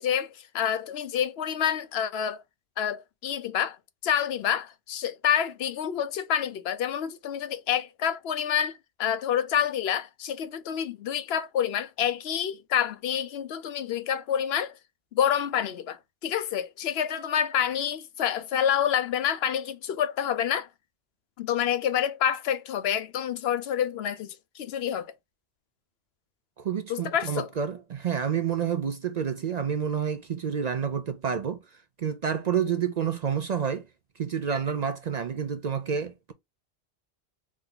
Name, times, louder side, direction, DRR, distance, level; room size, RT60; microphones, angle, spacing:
voice 1, 0.0-2.4 2.8-3.8 4.0-14.7 15.1-20.7 21.4-25.1 26.9-27.5, left 9 dB, 75° left, 0.8 m, -28 dB
voice 2, 26.6-31.6 32.0-33.9 34.2-36.3, right 7 dB, 55° right, 0.5 m, -29 dB
3.7 x 3.4 x 3.8 m
omnidirectional pair, 1.1 m